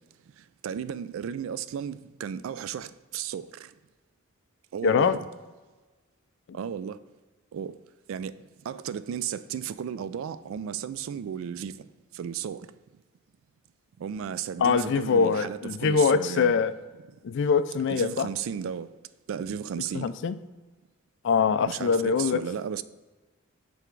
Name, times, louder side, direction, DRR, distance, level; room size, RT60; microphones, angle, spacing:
voice 1, 0.6-3.7 4.7-5.2 6.5-7.0 7.5-7.7 8.1-8.3 8.7-11.8 12.1-12.7 14.0-16.6 17.9-18.9 19.3-20.1 21.7-22.8, right 8 dB, 65° right, 0.3 m, -34 dB
voice 2, 4.8-5.2 14.6-16.7 17.2-18.3 19.9-20.4 21.2-22.4, left 5 dB, 55° left, 0.3 m, -23 dB
7.9 x 3.5 x 4.5 m
head